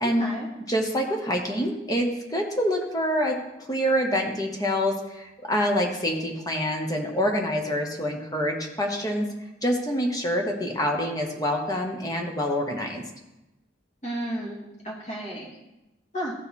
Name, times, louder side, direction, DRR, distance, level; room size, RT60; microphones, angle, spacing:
voice 1, 0.0-0.5 14.0-15.6 16.1-16.3, right 1 dB, 40° left, -5 dB, 2.7 m, -33 dB
voice 2, 0.7-9.3 9.6-13.0, equal, 20° left, 2 dB, 1.1 m, -26 dB
15.0 x 5.2 x 4.2 m, 0.97 s
head